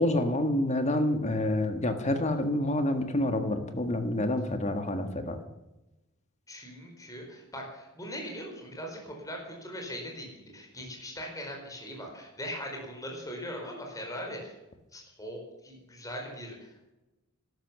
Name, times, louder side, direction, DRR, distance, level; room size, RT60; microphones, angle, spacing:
voice 1, 0.0-5.4, left 1 dB, 30° left, 7 dB, 1.6 m, -28 dB
voice 2, 6.5-14.6 14.9-16.9, equal, 15° left, 0 dB, 4.5 m, -40 dB
13.0 x 12.0 x 7.0 m, 1.0 s
head